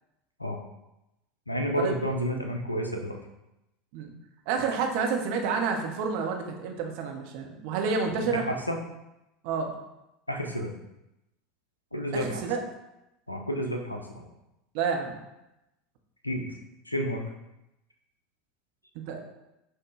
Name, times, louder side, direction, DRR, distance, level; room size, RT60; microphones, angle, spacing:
voice 1, 1.5-3.2 8.3-8.8 10.3-10.7 11.9-12.4 13.3-14.3 16.2-16.4 16.9-17.2, equal, 85° left, 3 dB, 0.4 m, -30 dB
voice 2, 4.5-8.4 9.4-9.7 12.1-12.6 14.7-15.2 18.9-19.2, right 5 dB, 55° right, 2 dB, 0.6 m, -29 dB
6.1 x 2.1 x 3.1 m, 0.92 s
figure-of-eight pair, 75°, 0 cm